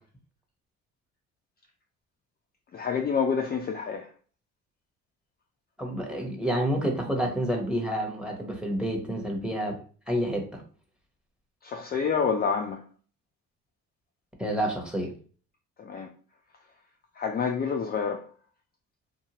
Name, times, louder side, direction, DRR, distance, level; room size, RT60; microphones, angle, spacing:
voice 1, 2.7-4.1 11.6-12.8 15.8-16.1 17.2-18.3, left 6 dB, 30° left, 0.4 m, -28 dB
voice 2, 5.8-9.8 10.1-10.6 14.4-15.1, equal, 5° right, 0.9 m, -29 dB
2.6 x 2.2 x 2.9 m
supercardioid pair, 80°, 31 cm